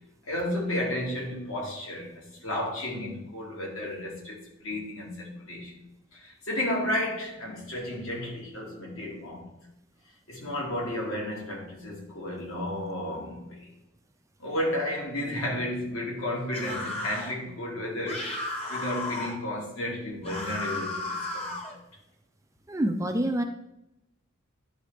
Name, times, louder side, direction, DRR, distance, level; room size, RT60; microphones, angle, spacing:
voice 1, 0.2-5.7 6.1-9.5 10.3-13.7 14.4-21.8, left 1 dB, 75° left, -2 dB, 2.0 m, -33 dB
sound 1, 16.5-17.3 18.1-19.4 20.2-21.7, left 2 dB, 30° left, 1.0 m, -34 dB
voice 2, 22.7-23.4, right 1 dB, 15° right, 6 dB, 0.4 m, -26 dB
10.5 x 3.9 x 3.3 m, 0.88 s
head